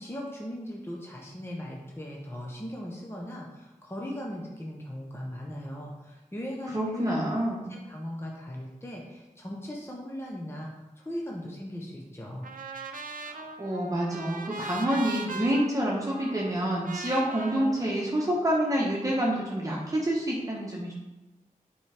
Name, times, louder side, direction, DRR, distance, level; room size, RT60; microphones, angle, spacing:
voice 1, 0.0-7.2 7.7-10.7 11.0-12.5, equal, 15° left, -2 dB, 0.9 m, -38 dB
voice 2, 6.7-7.7 13.2-20.9, right 1 dB, 25° right, -5 dB, 1.2 m, -27 dB
Trumpet, 12.4-18.7, right 4 dB, 85° right, 0.6 m, -41 dB
8.3 x 4.7 x 3.4 m, 1.1 s
wide cardioid pair, 95°, 14 cm